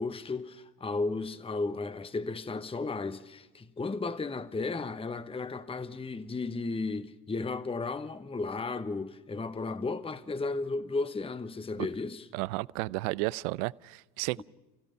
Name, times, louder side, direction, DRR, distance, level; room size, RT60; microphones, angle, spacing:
voice 1, 0.0-12.2, left 3 dB, 10° left, 1.0 m, -34 dB
voice 2, 12.3-14.4, right 21 dB, 65° right, 0.6 m, -33 dB
30.0 x 16.0 x 5.7 m
figure-of-eight pair, 55°, 49 cm